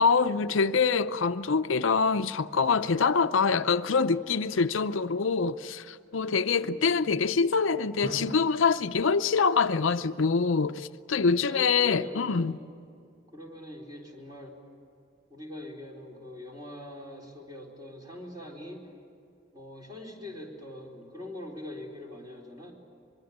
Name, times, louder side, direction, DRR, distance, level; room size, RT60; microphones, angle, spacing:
voice 1, 0.0-12.5, left 5 dB, 80° left, 0.6 m, -25 dB
voice 2, 6.5-7.3 11.5-12.6 13.3-14.6 15.3-18.9 19.5-22.7, left 1 dB, 20° right, 4.2 m, -42 dB
Drum, 8.0-10.9, right 1 dB, 80° right, 2.5 m, -44 dB
24.5 x 22.5 x 8.8 m
head